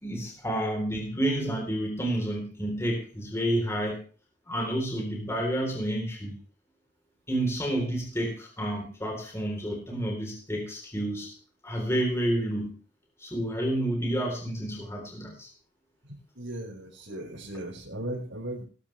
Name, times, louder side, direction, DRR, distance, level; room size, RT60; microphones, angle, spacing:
voice 1, 0.0-4.0 4.5-6.4 7.3-11.3 11.6-12.7 13.2-15.5, right 1 dB, 15° left, 0 dB, 3.9 m, -30 dB
voice 2, 16.0-18.6, right 1 dB, 80° right, -4 dB, 5.2 m, -37 dB
20.0 x 13.0 x 3.4 m, 0.37 s
head